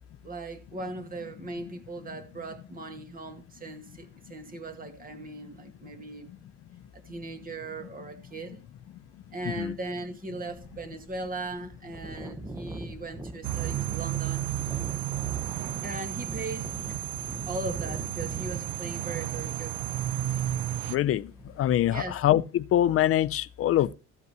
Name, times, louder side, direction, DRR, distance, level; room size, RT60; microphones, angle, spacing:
voice 1, 0.2-6.3 6.9-8.6 9.3-14.5 15.8-17.1 17.5-19.8 21.9-22.2, right 2 dB, 25° right, 2.1 m, -38 dB
sound 1, 10.5-21.8, right 2 dB, 10° right, 0.8 m, -43 dB
sound 2, 13.4-21.0, right 13 dB, 85° right, 0.6 m, -32 dB
voice 2, 20.9-21.3 21.6-23.9, left 12 dB, 45° left, 0.5 m, -24 dB
15.0 x 5.5 x 6.8 m
cardioid pair, 165°, 32 cm